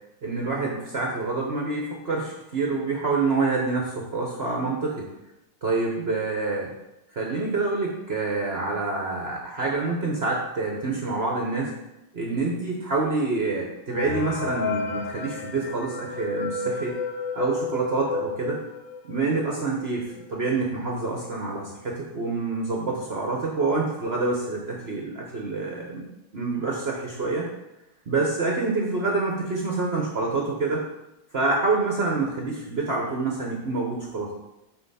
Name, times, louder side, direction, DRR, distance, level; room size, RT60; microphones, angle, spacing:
voice 1, 0.2-5.1 5.6-6.7 7.1-11.7 12.1-17.0 17.3-18.6 19.0-26.1 26.3-27.5 28.1-30.8 31.3-34.3, right 3 dB, 50° right, -1 dB, 0.7 m, -27 dB
sound 1, 13.9-19.3 19.8-19.9 20.1-20.2 21.0-21.1 21.4-21.8, left 4 dB, 70° left, 1.2 m, -32 dB
6.8 x 3.5 x 5.5 m, 0.91 s
omnidirectional pair, 2.3 m